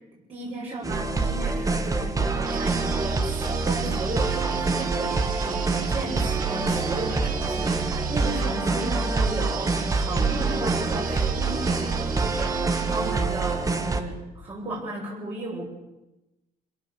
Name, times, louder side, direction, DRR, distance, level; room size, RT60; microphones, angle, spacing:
voice 1, 0.3-15.7, right 2 dB, 35° right, -6 dB, 6.9 m, -34 dB
sound 1, 0.8-14.0, right 3 dB, 20° right, 1.8 m, -26 dB
sound 2, 2.5-13.1, right 7 dB, 55° right, 1.9 m, -38 dB
26.5 x 18.0 x 6.9 m, 1.0 s
cardioid pair, 110°, 17 cm